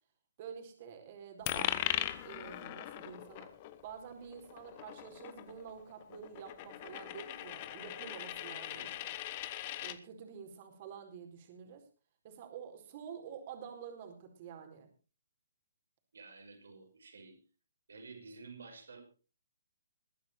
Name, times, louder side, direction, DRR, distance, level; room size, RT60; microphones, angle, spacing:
voice 1, 0.4-1.8 2.2-3.5 3.8-9.1 9.8-11.8 12.2-14.9, right 7 dB, 40° right, 5 dB, 4.4 m, -48 dB
Coin (dropping), 1.5-10.0, left 14 dB, 35° left, 1.3 m, -40 dB
voice 2, 8.7-9.1 16.1-17.4 17.9-19.0, right 4 dB, 75° right, 6 dB, 5.4 m, -52 dB
21.0 x 9.6 x 4.4 m, 0.35 s
hypercardioid pair, 140°, 0 cm